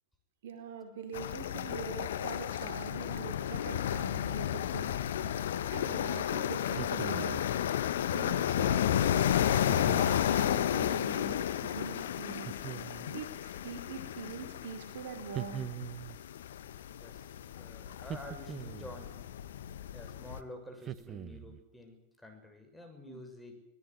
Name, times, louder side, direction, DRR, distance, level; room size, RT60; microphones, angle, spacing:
voice 1, 0.4-5.1 5.7-7.4 8.1-9.4 9.8-12.6 13.1-15.6 23.1-23.2, right 6 dB, 55° right, 5 dB, 4.2 m, -44 dB
sound 1, 1.1-20.4, left 10 dB, 60° left, 1.3 m, -32 dB
sound 2, 6.6-7.5 9.7-10.3 12.5-13.2 15.3-16.2 18.0-19.0 20.8-21.6, right 11 dB, 30° right, 1.0 m, -42 dB
voice 2, 17.0-19.2 19.9-23.5, left 1 dB, 5° left, 3 dB, 6.8 m, -49 dB
25.0 x 18.5 x 9.7 m, 0.81 s
figure-of-eight pair, 90°, 0 cm